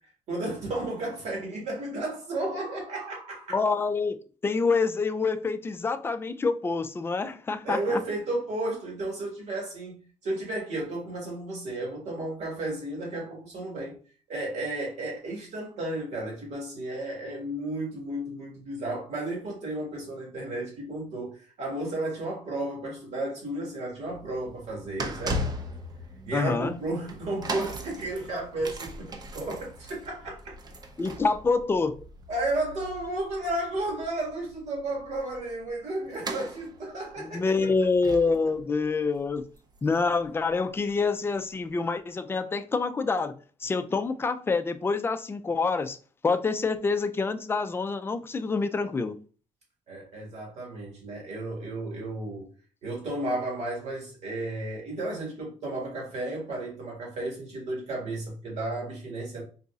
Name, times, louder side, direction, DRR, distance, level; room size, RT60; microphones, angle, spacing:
voice 1, 0.3-3.6 7.6-10.0 10.2-14.0 14.3-25.5 26.2-30.6 32.3-37.5 49.9-52.5 52.8-59.4, right 2 dB, 65° right, 1.8 m, -33 dB
voice 2, 3.5-8.0 26.3-26.7 31.0-32.1 37.2-39.5 39.8-46.0 46.2-49.2, left 4 dB, 20° left, 0.3 m, -27 dB
sound 1, 23.9-40.9 41.5-41.6, right 1 dB, 35° right, 0.6 m, -39 dB
3.9 x 2.6 x 2.3 m
cardioid pair, 105°, 12 cm